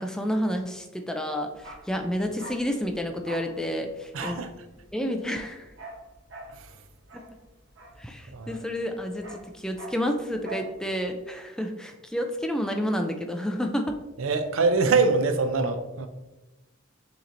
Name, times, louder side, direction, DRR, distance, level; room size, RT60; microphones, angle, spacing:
voice 1, 0.0-4.4 4.9-5.7 7.1-7.3 8.0-14.0, equal, 5° left, 0.3 m, -30 dB
Bark, 1.5-8.6 8.8-10.8 11.0-11.2, right 2 dB, 65° right, 0.9 m, -43 dB
voice 2, 4.1-4.5 6.5-6.7 8.3-8.6 14.2-16.1, right 4 dB, 85° right, 0.5 m, -24 dB
6.9 x 3.0 x 2.5 m
head